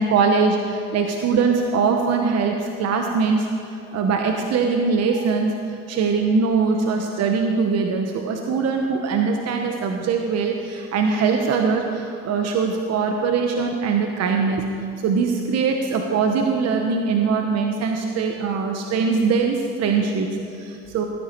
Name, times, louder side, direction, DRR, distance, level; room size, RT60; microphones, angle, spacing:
voice 1, 0.0-14.6 15.0-21.0, right 5 dB, 55° right, 3 dB, 1.1 m, -22 dB
17.5 x 9.7 x 4.5 m, 2.5 s
supercardioid pair, 90°, 32 cm